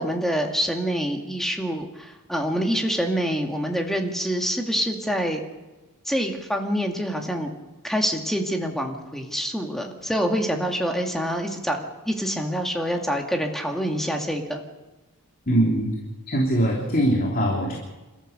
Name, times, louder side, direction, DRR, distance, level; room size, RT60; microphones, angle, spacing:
voice 1, 0.0-5.4 6.1-7.5 7.8-14.6, equal, ahead, 2 dB, 2.2 m, -26 dB
voice 2, 15.5-15.9 16.3-17.7, right 1 dB, 40° left, -1 dB, 3.3 m, -22 dB
28.5 x 14.0 x 6.8 m, 1.1 s
head